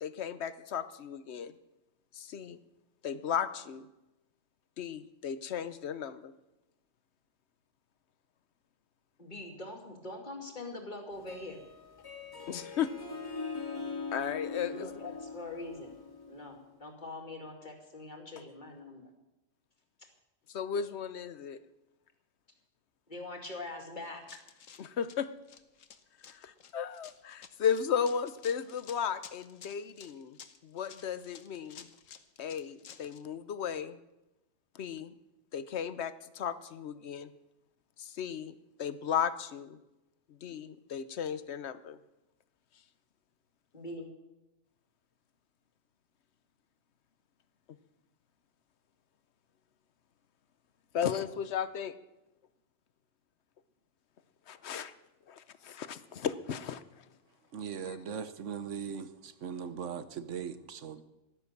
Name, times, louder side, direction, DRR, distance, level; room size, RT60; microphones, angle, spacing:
voice 1, 0.0-1.5 2.1-2.6 3.0-3.9 4.8-6.3 12.5-12.9 14.1-14.9 20.5-21.6 24.8-25.3 26.3-30.4 30.6-31.9 32.4-34.0 34.7-35.1 35.5-37.3 38.0-39.8 40.3-42.0 50.9-51.9 54.5-54.9 55.3-56.8 57.9-58.0, left 8 dB, 60° left, 1.0 m, -35 dB
voice 2, 9.2-11.6 14.7-15.9 16.3-19.0 23.1-24.4 43.7-44.1, left 2 dB, 35° left, 2.5 m, -43 dB
Harp, 11.1-16.7, left 4 dB, 15° left, 2.5 m, -42 dB
Run, 24.0-33.2, left 7 dB, 75° left, 1.3 m, -53 dB
voice 3, 57.5-61.0, right 7 dB, 70° right, 1.2 m, -39 dB
14.5 x 12.0 x 6.7 m
omnidirectional pair, 1.4 m